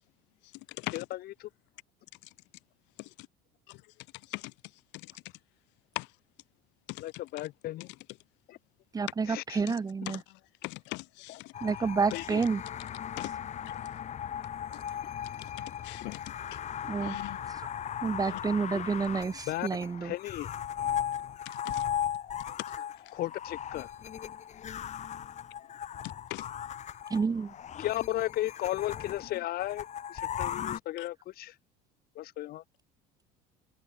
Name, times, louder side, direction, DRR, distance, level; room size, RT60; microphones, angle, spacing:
voice 1, 0.9-1.5 7.0-7.9 8.5-8.6 9.3-9.6 11.3-11.4 12.1-12.4 18.7-18.8 19.5-19.7 20.0-20.5 23.1-23.9 27.8-31.5 32.1-32.6, left 15 dB, 55° left, 1.5 m, -35 dB
voice 2, 8.9-10.2 11.6-12.6 16.8-17.2 18.0-20.1 27.1-27.5, right 5 dB, 20° right, 1.3 m, -29 dB
voice 3, 10.1-11.5 12.1-12.2 13.2-13.3 14.7-14.8 15.4-15.5 15.8-16.2 16.5-16.6 17.0-17.4 18.3-18.4 21.4-21.8 22.5-22.9 26.3-26.5 31.0-31.1, left 24 dB, 75° left, 1.4 m, -40 dB
sound 1, 11.5-30.8, left 9 dB, 40° left, 4.1 m, -37 dB
cardioid pair, 130°, 19 cm